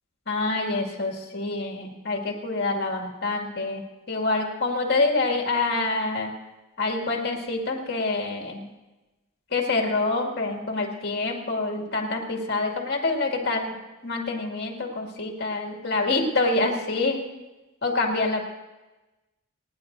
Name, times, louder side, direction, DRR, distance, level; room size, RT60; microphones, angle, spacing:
voice 1, 0.3-6.3 6.8-8.7 9.5-13.8 14.0-17.3 17.8-18.4, left 3 dB, 55° left, 1 dB, 2.2 m, -26 dB
29.5 x 10.5 x 2.7 m, 1.1 s
head